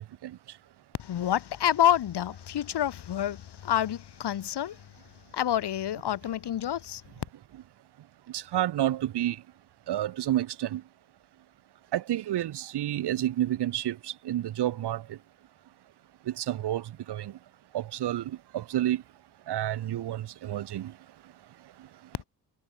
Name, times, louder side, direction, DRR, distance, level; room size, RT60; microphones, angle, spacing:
voice 1, 1.0-4.9 5.3-7.0, left 11 dB, 80° left, 6.7 m, -28 dB
voice 2, 8.3-9.4 9.9-10.8 11.9-14.0 14.2-15.0 16.4-17.3 17.7-18.2 18.5-19.0 19.5-20.9, right 12 dB, 80° right, 1.5 m, -29 dB
cardioid pair, 70°, 39 cm